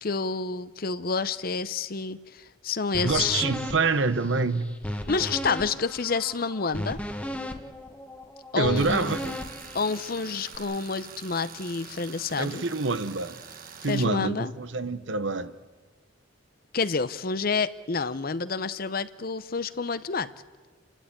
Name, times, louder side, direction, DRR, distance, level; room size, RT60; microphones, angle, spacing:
voice 1, 0.0-3.4 5.1-7.0 8.5-9.2 9.7-12.6 13.9-14.5 16.7-20.3, left 4 dB, 50° left, 0.8 m, -29 dB
sound 1, 2.9-10.6, left 1 dB, 5° left, 1.4 m, -36 dB
voice 2, 3.0-4.7 8.6-9.4 12.4-13.4 13.8-15.5, right 3 dB, 75° right, 1.1 m, -26 dB
Tools, 8.8-14.0, right 6 dB, 45° right, 1.6 m, -45 dB
30.0 x 13.0 x 8.9 m
head